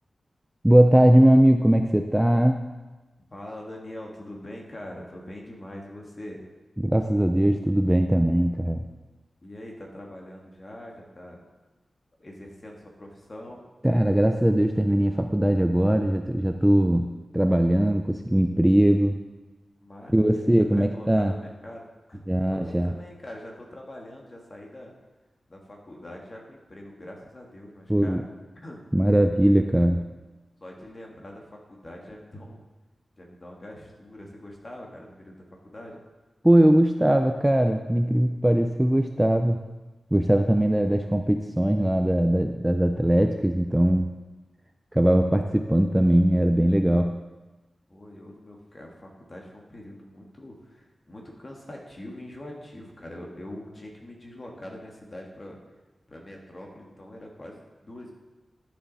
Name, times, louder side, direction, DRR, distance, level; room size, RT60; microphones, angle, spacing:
voice 1, 0.6-2.7 6.8-8.8 13.8-19.2 20.1-21.3 22.3-22.9 27.9-28.2 28.9-30.1 36.4-39.6 40.1-44.1 44.9-47.2, right 1 dB, 10° right, 5 dB, 0.4 m, -20 dB
voice 2, 3.3-6.4 9.4-11.4 12.2-13.7 19.8-24.9 25.5-28.2 28.6-28.8 30.6-32.6 33.2-36.0 47.9-55.6 56.1-58.1, left 1 dB, 30° left, -1 dB, 1.7 m, -43 dB
11.5 x 7.2 x 4.1 m, 1.1 s
wide cardioid pair, 140°, 0 cm